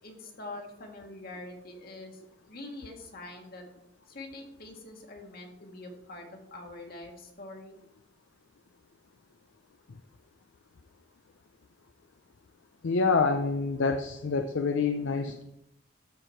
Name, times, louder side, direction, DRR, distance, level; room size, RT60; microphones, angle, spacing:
voice 1, 0.0-2.2 2.5-3.6 4.1-7.8, left 2 dB, 50° left, 2 dB, 1.7 m, -44 dB
voice 2, 12.8-15.4, left 4 dB, 70° left, 7 dB, 0.5 m, -27 dB
13.0 x 4.6 x 4.4 m, 0.82 s
head